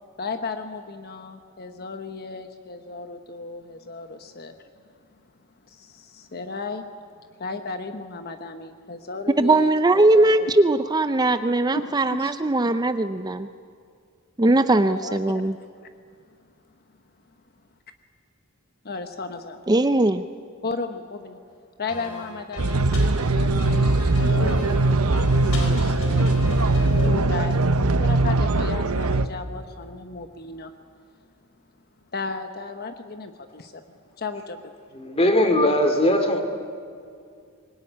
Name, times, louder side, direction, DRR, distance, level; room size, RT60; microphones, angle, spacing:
voice 1, 0.2-4.6 5.1-5.2 5.6-6.8 7.2-10.5 11.7-12.3 14.7-15.5 15.9-16.2 18.8-19.7 20.6-21.4 21.8-23.9 24.2-27.6 28.0-30.7 31.1-31.3 32.1-33.8 34.2-34.7, left 4 dB, 45° left, 7 dB, 1.1 m, -35 dB
voice 2, 9.4-13.5 14.4-15.5 19.7-20.2, right 2 dB, 20° right, 10 dB, 0.5 m, -20 dB
sound 1, 21.9-27.1, left 2 dB, 80° left, 4.5 m, -36 dB
sound 2, 22.6-29.3, right 2 dB, 85° right, 1.0 m, -21 dB
voice 3, 34.9-36.4, left 1 dB, 25° left, 6 dB, 2.6 m, -20 dB
24.5 x 21.0 x 10.0 m, 2.3 s
head